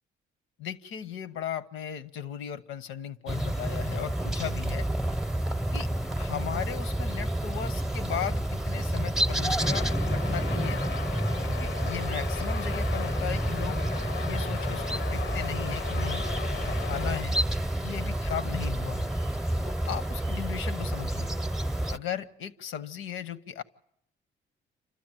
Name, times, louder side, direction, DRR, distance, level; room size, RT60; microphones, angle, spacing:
voice 1, 0.6-4.9 5.7-5.9 6.2-10.8 11.6-13.8 14.2-16.2 16.6-17.3 17.8-19.1 19.6-21.3 21.9-23.6, left 9 dB, 85° left, 12 dB, 1.0 m, -37 dB
sound 1, 3.3-22.0, right 1 dB, ahead, 0.8 m, -29 dB
sound 2, 9.6-17.2, left 9 dB, 70° left, 0.7 m, -38 dB
28.0 x 13.0 x 9.0 m, 0.75 s
cardioid pair, 90°, 20 cm